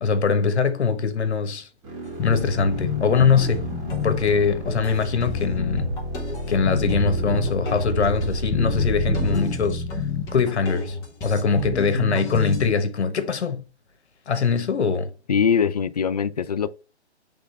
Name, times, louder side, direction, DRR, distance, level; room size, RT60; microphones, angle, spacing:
voice 1, 0.0-1.7 2.2-3.7 4.0-5.9 6.5-9.8 10.3-11.0 11.2-13.6 14.3-15.1, left 5 dB, 70° left, 1.3 m, -22 dB
sound 1, 1.8-9.4, equal, 25° right, 2.3 m, -31 dB
sound 2, 2.2-12.7, left 3 dB, 10° left, 0.8 m, -29 dB
voice 2, 15.3-16.7, left 7 dB, 40° left, 0.4 m, -22 dB
7.9 x 3.6 x 3.3 m
hypercardioid pair, 150°, 34 cm